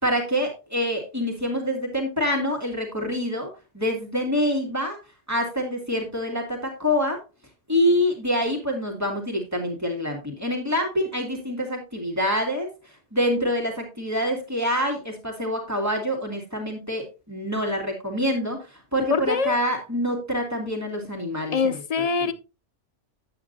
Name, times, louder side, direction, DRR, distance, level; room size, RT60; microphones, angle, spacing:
voice 1, 0.0-3.5 3.7-5.0 5.3-7.2 7.7-12.7 13.1-22.3, equal, 15° right, 2.3 m, -26 dB
voice 2, 19.1-19.5 21.5-22.3, left 5 dB, 60° left, 0.4 m, -23 dB
9.5 x 8.7 x 2.6 m
omnidirectional pair, 1.2 m